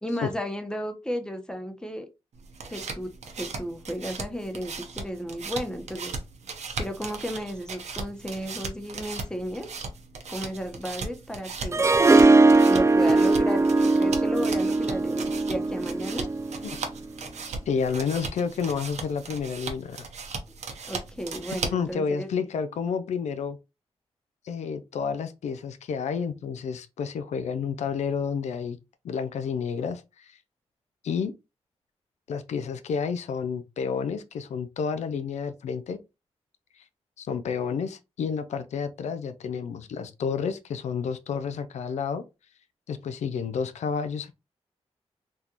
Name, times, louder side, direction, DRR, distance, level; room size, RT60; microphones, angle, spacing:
voice 1, 0.0-2.1 2.7-3.1 3.4-6.2 6.8-9.7 10.3-11.9 12.6-16.3 20.9-22.3, equal, 5° left, 0.8 m, -34 dB
Flipping Through a Deck of Cards, 2.3-21.9, right 4 dB, 80° right, 0.8 m, -38 dB
Harp, 11.7-16.8, right 3 dB, 25° right, 0.3 m, -20 dB
voice 2, 17.7-20.1 21.6-23.6 24.4-28.8 29.0-30.4 31.0-31.3 32.3-36.0 36.8-36.9 37.2-42.2 42.9-44.3, left 6 dB, 85° left, 0.4 m, -30 dB
3.6 x 2.5 x 2.9 m
cardioid pair, 85°, 11 cm